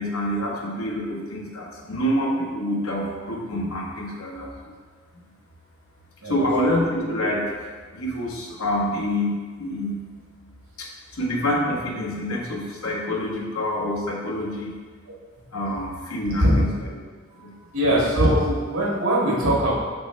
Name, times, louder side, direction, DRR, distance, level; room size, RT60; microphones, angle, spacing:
voice 1, 0.0-4.7 6.2-10.1 10.8-14.7 15.5-16.7 17.3-17.6, left 1 dB, 85° left, -2 dB, 1.3 m, -27 dB
voice 2, 17.7-19.7, right 1 dB, 85° right, -5 dB, 2.0 m, -21 dB
6.3 x 5.9 x 3.3 m, 1.5 s
head